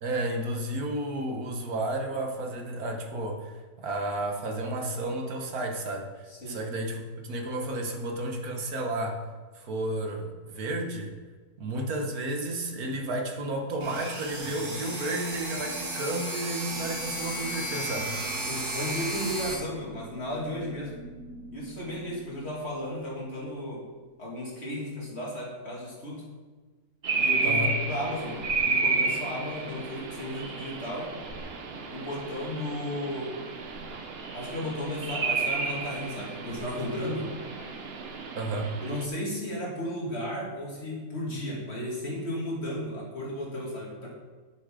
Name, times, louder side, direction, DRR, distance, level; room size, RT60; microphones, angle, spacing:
voice 1, 0.0-9.2 9.5-11.1 11.6-18.2 27.4-27.8 38.3-38.7, right 1 dB, 80° right, 2 dB, 1.7 m, -32 dB
sound 1, 13.8-19.5, right 1 dB, 30° right, 1.3 m, -34 dB
sound 2, 16.7-24.6, right 2 dB, 60° left, 3.0 m, -47 dB
voice 2, 18.5-21.0 21.5-23.8 24.2-26.2 27.1-31.1 31.9-33.3 34.3-37.3 38.8-44.1, left 1 dB, 45° left, -4 dB, 2.6 m, -34 dB
sound 3, 27.0-39.0, right 4 dB, 45° right, 1.0 m, -31 dB
9.8 x 8.6 x 3.8 m, 1.4 s
omnidirectional pair, 1.6 m